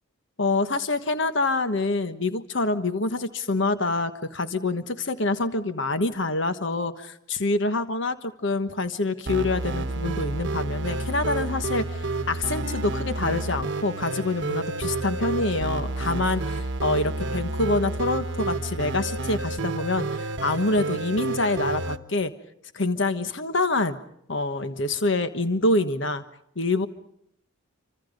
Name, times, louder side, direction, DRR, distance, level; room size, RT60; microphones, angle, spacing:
voice 1, 0.4-22.3 22.7-24.0 24.3-26.2 26.6-26.9, left 2 dB, 60° left, 10 dB, 1.3 m, -26 dB
sound 1, 9.3-22.0, right 2 dB, 60° right, 1.2 m, -30 dB
28.0 x 26.0 x 5.2 m, 0.72 s
head